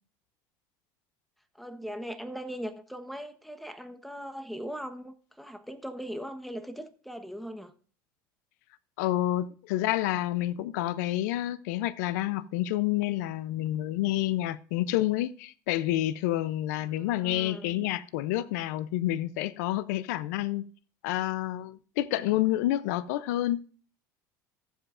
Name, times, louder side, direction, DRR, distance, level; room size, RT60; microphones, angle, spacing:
voice 1, 1.6-7.7 17.0-17.8, equal, ahead, 1.1 m, -39 dB
voice 2, 9.0-20.7 21.0-23.7, left 14 dB, 85° left, 0.5 m, -29 dB
14.5 x 7.9 x 2.5 m
supercardioid pair, 100°, 9 cm